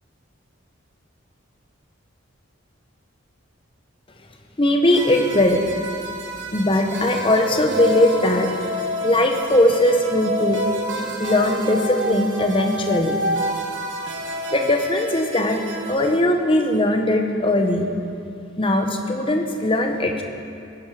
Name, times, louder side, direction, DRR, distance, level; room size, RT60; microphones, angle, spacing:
voice 1, 4.6-5.6 6.5-8.5 9.0-13.2 14.5-15.6 15.9-17.9 18.6-20.2, left 1 dB, 25° left, 4 dB, 1.1 m, -20 dB
sound 1, 4.9-16.2, right 1 dB, 60° right, 1.4 m, -29 dB
18.0 x 11.0 x 5.0 m, 2.6 s
head